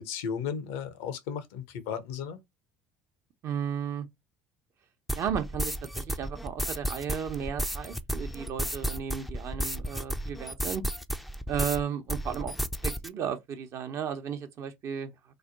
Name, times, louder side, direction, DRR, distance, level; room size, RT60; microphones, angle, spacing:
voice 1, 0.0-2.4, left 7 dB, 75° left, 0.8 m, -35 dB
voice 2, 3.4-4.1 5.1-10.8 11.5-12.5 12.8-15.1, right 8 dB, 50° right, 0.9 m, -34 dB
sound 1, 5.1-11.8 12.1-13.1, equal, ahead, 0.5 m, -33 dB
3.2 x 2.2 x 3.9 m
hypercardioid pair, 65°, 6 cm